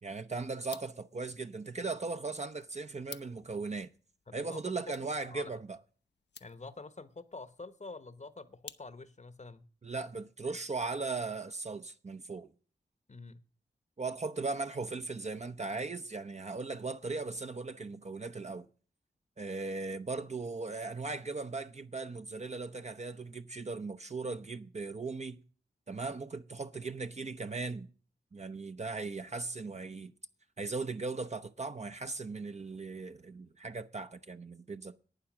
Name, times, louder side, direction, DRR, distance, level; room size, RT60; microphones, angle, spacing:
voice 1, 0.0-3.9 4.3-5.8 9.8-12.5 14.0-18.7 19.4-25.4 25.9-27.9 28.3-30.1 30.6-35.0, right 3 dB, 40° right, 0.7 m, -38 dB
sound 1, 0.6-9.3, left 7 dB, 70° left, 0.6 m, -56 dB
voice 2, 4.3-4.8 5.3-5.6 6.4-9.6 13.1-13.4, left 3 dB, 40° left, 1.0 m, -47 dB
11.5 x 8.7 x 6.1 m
cardioid pair, 55°, 18 cm